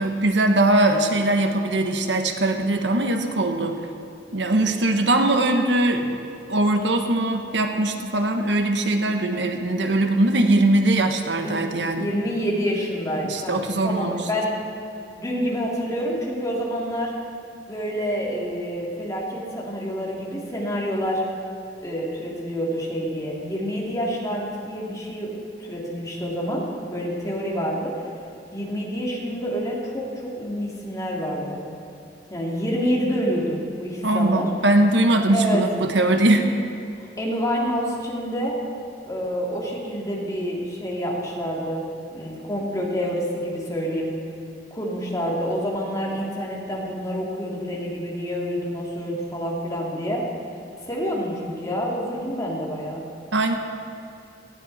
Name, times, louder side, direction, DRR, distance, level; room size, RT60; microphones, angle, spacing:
voice 1, 0.0-3.8 4.3-6.2 6.4-12.1 13.2-14.2 34.0-36.5 53.3-53.6, right 1 dB, 85° right, 5 dB, 1.3 m, -21 dB
voice 2, 11.4-14.5 15.2-17.1 17.7-21.2 21.8-28.0 28.5-31.6 32.3-34.5 35.3-35.6 37.2-38.5 39.1-41.8 42.1-44.1 44.7-50.2 50.8-53.0, equal, 20° left, -4 dB, 3.0 m, -27 dB
18.5 x 16.0 x 4.3 m, 2.6 s
head